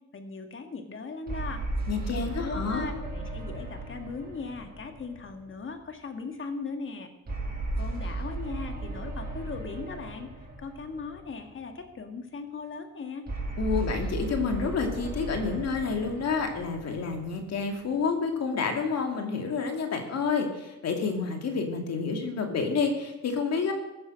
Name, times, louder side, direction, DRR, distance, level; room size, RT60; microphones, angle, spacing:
voice 1, 0.1-1.6 2.1-7.1 7.8-10.3 10.6-13.3, left 4 dB, 40° left, 6 dB, 1.9 m, -38 dB
sound 1, 1.3-5.8 7.3-11.6 13.3-17.8, right 2 dB, 30° right, 6.4 m, -36 dB
voice 2, 1.9-2.9 13.6-23.7, left 5 dB, 55° left, 4 dB, 2.5 m, -29 dB
15.0 x 9.5 x 6.4 m, 0.97 s
cardioid pair, 90°, 30 cm